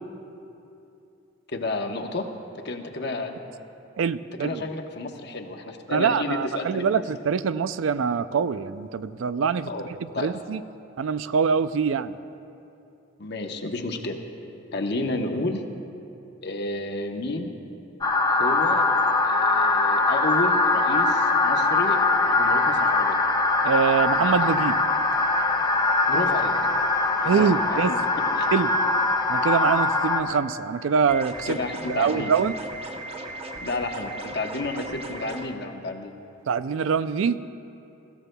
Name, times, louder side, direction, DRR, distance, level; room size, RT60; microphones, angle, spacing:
voice 1, 1.5-2.3 2.6-3.4 4.4-7.0 9.7-9.9 10.1-10.3 13.2-14.2 14.7-15.6 16.4-17.6 18.3-18.8 19.2-23.2 26.1-26.5 27.2-28.0 28.3-28.5 31.5-32.3 33.6-36.1, left 2 dB, 55° left, 4 dB, 1.0 m, -31 dB
voice 2, 4.0-4.7 5.9-9.7 10.0-10.6 11.0-12.2 23.6-24.8 27.2-27.9 28.5-28.7 29.3-31.6 31.9-32.5 36.5-37.4, right 6 dB, 80° right, 14 dB, 0.4 m, -24 dB
sound 1, 18.0-30.2, left 3 dB, 20° left, 0.7 m, -22 dB
sound 2, 31.1-35.5, right 1 dB, 30° right, 0.8 m, -37 dB
23.0 x 14.5 x 2.2 m, 2.8 s
head